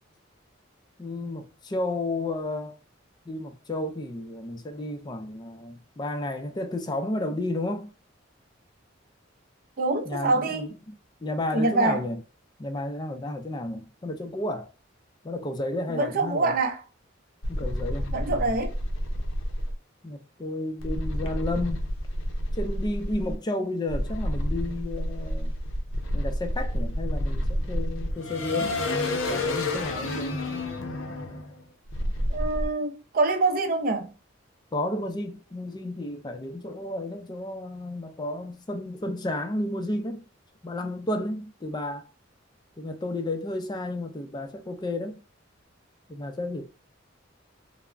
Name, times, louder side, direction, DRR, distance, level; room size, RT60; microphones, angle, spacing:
voice 1, 1.0-2.8 3.3-7.9 10.0-12.2 12.6-14.7 15.2-16.5 17.5-18.6 20.0-21.9 22.6-25.5 26.1-28.8 29.3-30.4 34.7-40.2 40.6-42.1 42.8-45.2 46.1-46.7, left 1 dB, 20° left, 0.4 m, -32 dB
voice 2, 9.8-10.7 11.5-12.0 15.9-16.8 18.1-18.8 32.3-34.1, right 3 dB, 45° right, 0.5 m, -25 dB
sound 1, 17.4-19.7 20.8-23.4 23.9-32.7, left 1 dB, 85° left, 0.6 m, -29 dB
3.4 x 2.0 x 2.4 m
head